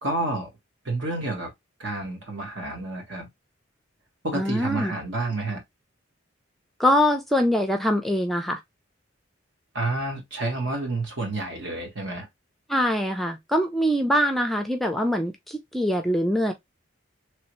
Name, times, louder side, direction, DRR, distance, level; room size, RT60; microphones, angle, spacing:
voice 1, 0.0-0.5 0.8-1.5 1.8-3.3 4.2-5.6 9.7-12.3, right 2 dB, 65° right, 1.5 m, -29 dB
voice 2, 4.3-4.9 6.8-8.6 12.7-16.5, equal, ahead, 0.4 m, -23 dB
3.3 x 2.7 x 3.0 m
head